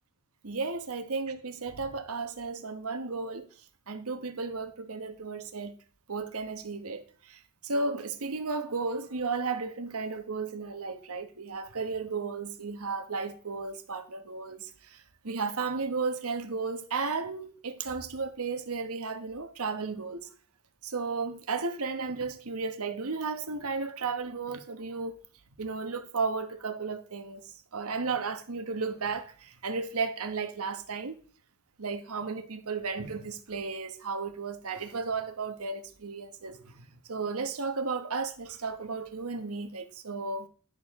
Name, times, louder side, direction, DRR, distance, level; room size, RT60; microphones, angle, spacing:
voice 1, 0.4-3.5 3.9-5.8 6.1-20.3 20.8-25.2 25.6-31.2 31.8-40.5, right 4 dB, 80° right, 1.1 m, -34 dB
10.5 x 6.8 x 3.6 m
head